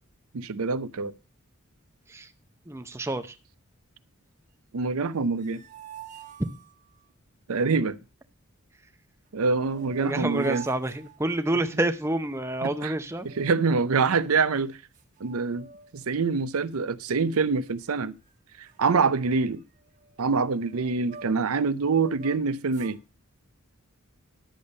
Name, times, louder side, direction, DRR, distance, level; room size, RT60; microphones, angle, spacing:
voice 1, 0.3-1.1 4.7-5.6 7.5-8.0 9.3-10.6 12.6-12.9 13.2-14.8 15.2-15.7 15.9-18.1 18.6-19.6 20.2-23.0, right 4 dB, 80° right, 0.6 m, -25 dB
voice 2, 2.7-3.3 10.0-13.3, right 1 dB, 10° right, 0.6 m, -28 dB
sound 1, 5.1-7.1 9.3-9.4 9.6-11.8 13.2-14.0 14.6-14.7 14.9-16.0 16.4-16.7 17.3-17.9 18.2-18.4 18.6-21.5 21.9-23.0, right 7 dB, 35° right, 1.5 m, -48 dB
10.5 x 6.9 x 5.2 m
head